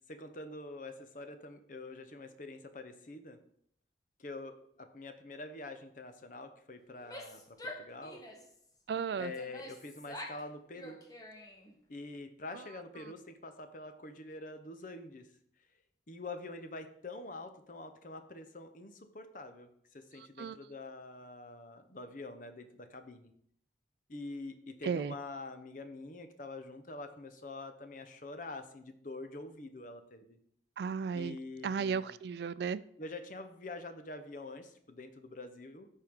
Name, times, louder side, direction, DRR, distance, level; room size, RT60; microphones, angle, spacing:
voice 1, 0.1-3.4 4.2-8.2 9.2-11.0 11.9-15.3 16.1-23.3 24.1-30.4 31.1-32.1 33.0-35.9, left 2 dB, 45° left, 8 dB, 0.8 m, -46 dB
Female speech woman speaking / Yell, 6.9-8.6 9.2-10.5 10.7-11.7, left 1 dB, 20° left, 1.0 m, -47 dB
voice 2, 8.9-9.3 12.5-12.6 20.2-20.6 24.8-25.1 30.8-31.4 31.6-32.8, right 6 dB, 65° right, 17 dB, 0.3 m, -35 dB
13.5 x 4.6 x 3.6 m, 0.68 s
head